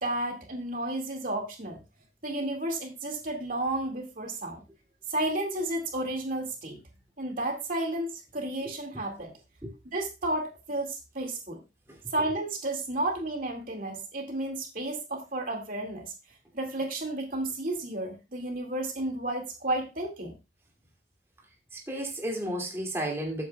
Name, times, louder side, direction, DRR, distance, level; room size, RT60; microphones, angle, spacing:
voice 1, 0.0-1.8 2.2-4.6 5.1-6.8 7.2-9.3 9.9-11.6 12.1-16.1 16.5-20.3, right 1 dB, 50° right, 2.3 m, -32 dB
voice 2, 21.7-23.5, right 1 dB, 15° right, 2.6 m, -33 dB
14.0 x 8.6 x 2.4 m
head